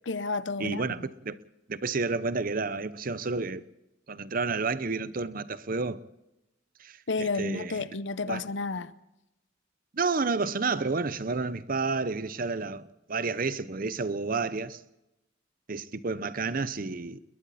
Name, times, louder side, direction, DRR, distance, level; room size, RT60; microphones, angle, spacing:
voice 1, 0.1-1.1 7.1-8.9, left 3 dB, 65° left, 0.8 m, -31 dB
voice 2, 0.6-1.4 1.7-3.6 4.1-6.0 6.8-7.9 8.3-8.4 9.9-14.8 15.7-17.2, right 4 dB, 45° right, 0.7 m, -30 dB
29.5 x 21.0 x 4.2 m
head